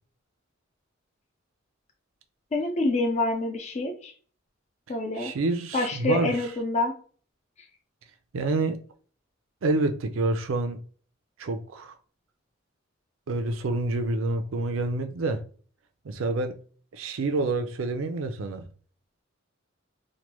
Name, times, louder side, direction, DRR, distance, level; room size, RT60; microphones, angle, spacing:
voice 1, 2.5-4.1 4.9-5.3 5.7-6.9, left 2 dB, 35° left, 0.5 m, -26 dB
voice 2, 5.2-6.3 8.3-8.8 9.6-10.8 11.4-11.9 13.3-15.4 16.0-16.5 16.9-18.6, right 2 dB, 80° right, 0.5 m, -27 dB
3.2 x 2.2 x 3.0 m
head